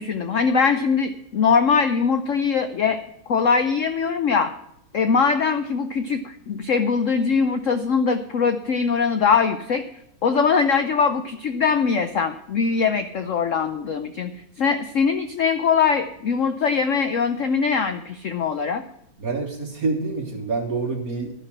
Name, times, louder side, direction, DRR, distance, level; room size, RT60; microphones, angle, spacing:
voice 1, 0.0-3.0 3.3-4.5 4.9-9.9 10.2-14.3 14.6-18.8, left 5 dB, 65° left, 9 dB, 0.7 m, -21 dB
voice 2, 19.2-21.3, right 3 dB, 45° right, 2 dB, 1.9 m, -27 dB
12.0 x 6.7 x 8.7 m, 0.76 s
omnidirectional pair, 2.3 m